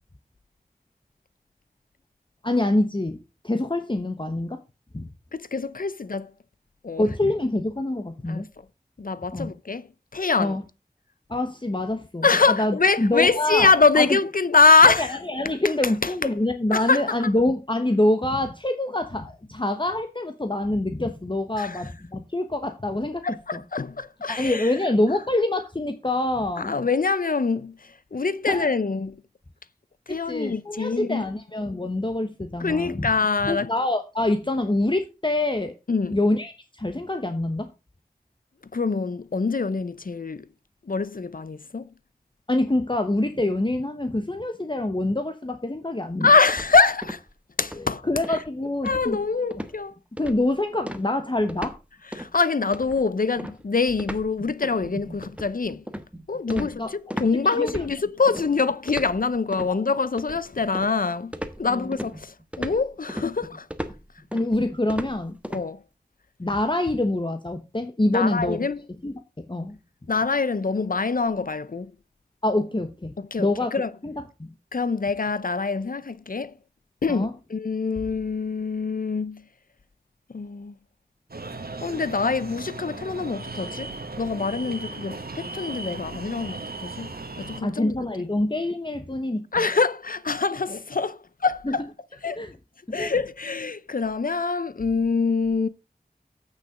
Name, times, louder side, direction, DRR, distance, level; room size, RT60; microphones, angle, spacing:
voice 1, 2.4-3.2 3.4-4.6 4.9-5.1 7.0-8.5 9.3-9.5 10.4-10.6 11.3-13.7 14.0-14.2 14.8-23.2 23.5-23.6 24.3-26.7 28.5-28.7 30.1-33.1 33.4-35.7 36.1-37.7 42.5-46.3 47.7-49.2 50.2-51.8 56.5-56.9 57.6-57.7 59.6-59.8 61.7-61.9 64.3-65.4 66.4-68.6 69.0-69.8 72.4-73.1 73.4-73.7 74.0-74.5 77.1-77.3 87.6-89.6 91.6-91.8 92.4-92.5 92.9-93.1, left 1 dB, 30° left, 1.0 m, -25 dB
voice 2, 5.3-6.3 6.8-7.1 8.3-8.4 9.0-9.9 10.1-10.6 12.2-15.2 16.0-16.1 16.7-17.0 21.6-21.8 23.2-24.7 26.6-29.2 30.1-31.2 32.6-33.7 35.9-36.2 38.7-40.5 40.9-41.9 46.2-47.2 47.6-48.4 48.8-49.9 52.2-55.8 56.3-61.3 61.6-63.7 65.5-65.8 68.1-68.8 70.1-71.9 73.2-73.9 74.7-76.5 77.0-79.4 80.3-80.7 81.8-83.9 84.2-87.1 87.4-88.0 89.5-91.8 92.2-92.4 92.9-95.7, left 4 dB, 65° left, 0.6 m, -24 dB
sound 1, 46.5-47.3 47.6-47.9 48.2-48.5 48.9-49.3 49.5-49.8 50.2-50.5 50.9-51.8 52.1-52.3 52.7-57.3 57.7-58.5 58.9-59.7 60.2-61.0 61.3-65.6, equal, 10° right, 1.1 m, -36 dB
sound 2, 81.3-87.6, right 3 dB, 75° right, 1.3 m, -37 dB
8.4 x 6.6 x 4.8 m
wide cardioid pair, 45°, 16 cm